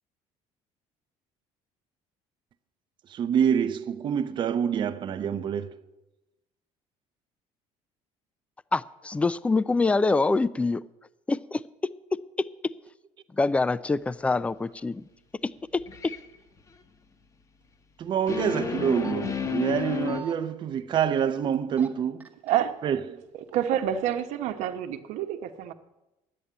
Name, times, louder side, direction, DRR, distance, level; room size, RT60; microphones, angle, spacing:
voice 1, 3.1-5.7 18.0-22.3 22.8-23.2, right 8 dB, 40° right, 0.7 m, -26 dB
voice 2, 8.7-10.8 11.3-11.6 13.4-15.0, left 3 dB, 10° left, 0.4 m, -25 dB
sound 1, 15.8-16.2 18.3-20.2, left 6 dB, 25° left, 0.9 m, -31 dB
sound 2, 18.8-19.1 19.8-20.3 21.5-21.9 22.2-22.6 23.3-23.8 24.2-24.3, right 4 dB, 15° right, 1.1 m, -43 dB
voice 3, 23.5-25.7, right 10 dB, 80° right, 1.0 m, -28 dB
11.0 x 8.7 x 9.2 m
cardioid pair, 140°, 12 cm